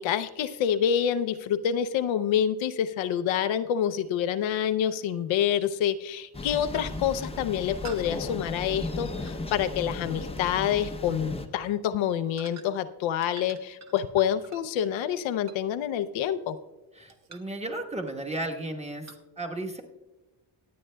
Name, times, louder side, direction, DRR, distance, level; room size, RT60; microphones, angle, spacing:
voice 1, 0.0-16.6, left 9 dB, 80° left, 10 dB, 0.6 m, -27 dB
sound 1, 1.8-1.9 4.4-4.5 5.6-5.8 6.2-6.5 6.7-7.1 7.8-10.0 10.4-10.6 11.2-11.5 12.4-12.9 13.2-16.7 17.1-17.6 18.1-18.4 19.1-19.2, right 5 dB, 35° right, 0.8 m, -50 dB
Thunder, 6.3-11.5, left 2 dB, 15° left, 0.6 m, -36 dB
voice 2, 17.0-19.8, right 2 dB, 15° right, 2 dB, 1.1 m, -34 dB
24.5 x 8.6 x 2.2 m, 1.1 s
cardioid pair, 125°, 46 cm